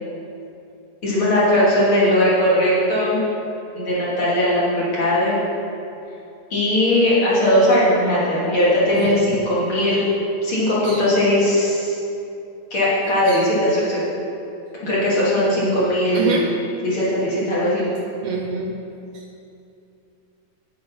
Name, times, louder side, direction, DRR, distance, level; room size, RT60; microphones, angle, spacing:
voice 1, 1.0-3.2 3.7-5.4 6.5-10.0 10.4-12.0 12.7-14.0 14.8-16.4 16.8-17.9, left 1 dB, 45° left, -8 dB, 3.4 m, -19 dB
voice 2, 16.1-16.5 18.2-18.7 19.1-19.2, right 4 dB, 70° right, 1 dB, 1.7 m, -26 dB
9.2 x 8.5 x 5.5 m, 2.7 s
omnidirectional pair, 3.4 m